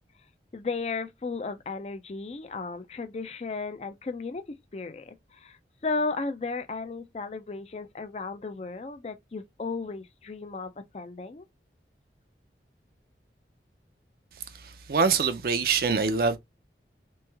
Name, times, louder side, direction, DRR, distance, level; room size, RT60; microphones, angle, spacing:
voice 1, 0.5-4.4 4.7-5.6 5.8-11.5, left 3 dB, 35° left, 0.4 m, -34 dB
voice 2, 14.5-16.4, right 5 dB, 55° right, 0.5 m, -25 dB
3.5 x 3.1 x 3.3 m
head